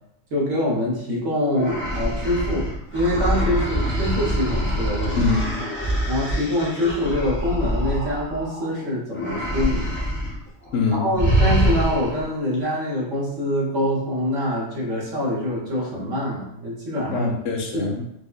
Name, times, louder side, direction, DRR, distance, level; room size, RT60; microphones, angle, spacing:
voice 1, 0.3-5.2 6.1-9.9 10.9-17.3 17.7-17.9, left 1 dB, 80° right, -4 dB, 1.3 m, -25 dB
sound 1, 1.5-8.7 9.1-10.4 10.6-10.8 11.2-12.3, equal, 15° left, 0.5 m, -24 dB
voice 2, 5.2-5.7 10.7-11.2 17.1-18.0, left 4 dB, 75° left, 2 dB, 0.9 m, -24 dB
4.7 x 2.1 x 2.3 m, 0.77 s
omnidirectional pair, 1.3 m